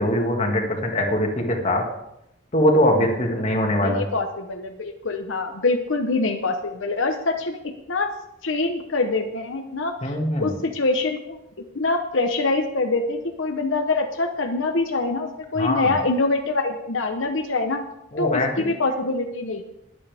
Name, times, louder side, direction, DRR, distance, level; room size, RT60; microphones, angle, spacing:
voice 1, 0.0-1.8 2.5-4.1 10.0-10.5 15.6-15.9 18.1-18.5, left 1 dB, 35° left, 1 dB, 2.1 m, -22 dB
voice 2, 3.8-8.1 8.4-11.4 11.7-17.8 18.2-19.6, left 3 dB, 75° left, 4 dB, 1.0 m, -25 dB
21.0 x 8.6 x 3.5 m, 0.84 s
head